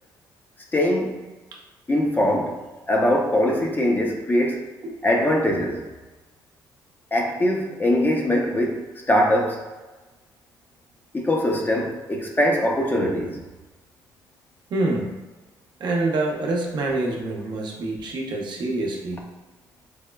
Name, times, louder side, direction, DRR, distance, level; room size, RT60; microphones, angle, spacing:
voice 1, 0.7-1.2 1.9-2.6 2.9-4.6 5.0-5.8 7.1-9.6 11.1-13.4, left 1 dB, 25° left, 0 dB, 0.6 m, -22 dB
voice 2, 14.7-15.1 15.8-19.2, right 2 dB, 60° right, -1 dB, 0.7 m, -26 dB
4.7 x 2.1 x 2.2 m, 1.2 s
cardioid pair, 75°, 9 cm